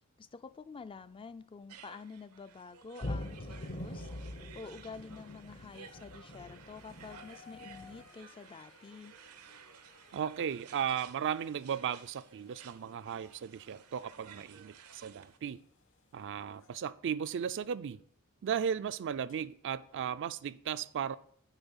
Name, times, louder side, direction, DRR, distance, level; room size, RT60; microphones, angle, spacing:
voice 1, 0.2-4.1 4.5-9.1, left 4 dB, 25° left, 0.3 m, -48 dB
sound 1, 1.7-15.4, right 7 dB, 85° right, 0.7 m, -56 dB
sound 2, 3.0-8.1, left 1 dB, 40° left, 0.7 m, -43 dB
sound 3, 4.6-5.1 5.6-16.8 17.9-18.0 19.3-19.4, left 6 dB, 60° left, 1.4 m, -62 dB
voice 2, 10.1-15.6 16.1-18.0 18.4-21.2, right 8 dB, 55° right, 0.4 m, -36 dB
9.0 x 4.2 x 7.1 m
head